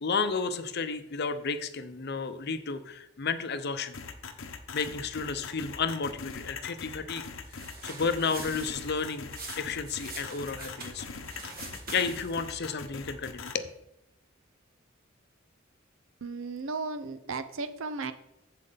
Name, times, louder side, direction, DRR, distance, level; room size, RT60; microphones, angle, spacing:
voice 1, 0.0-4.0 4.7-7.2 7.8-9.3 9.6-11.1 11.9-13.7, left 5 dB, 55° left, 10 dB, 0.7 m, -32 dB
sound 1, 3.9-13.5, left 5 dB, 85° left, 0.9 m, -41 dB
sound 2, 7.4-12.4, right 3 dB, 50° right, 1.4 m, -44 dB
voice 2, 16.2-18.1, right 4 dB, 75° right, 11 dB, 0.7 m, -35 dB
7.6 x 7.5 x 3.9 m, 0.81 s
head